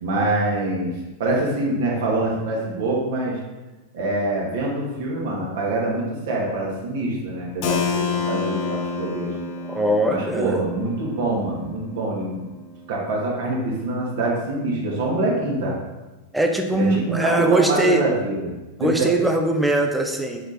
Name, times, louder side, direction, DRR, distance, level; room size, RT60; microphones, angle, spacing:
voice 1, 0.0-3.4 3.9-9.3 10.1-12.4 12.9-15.8 16.7-18.5 18.8-19.1, right 2 dB, 55° right, -4 dB, 1.7 m, -25 dB
Keyboard (musical), 7.6-13.2, left 5 dB, 45° left, 0.7 m, -29 dB
voice 2, 9.7-10.6 16.3-18.0 18.8-20.5, right 1 dB, 5° right, 3 dB, 0.7 m, -21 dB
5.0 x 4.9 x 4.2 m, 1.1 s
figure-of-eight pair, 90°, 0 cm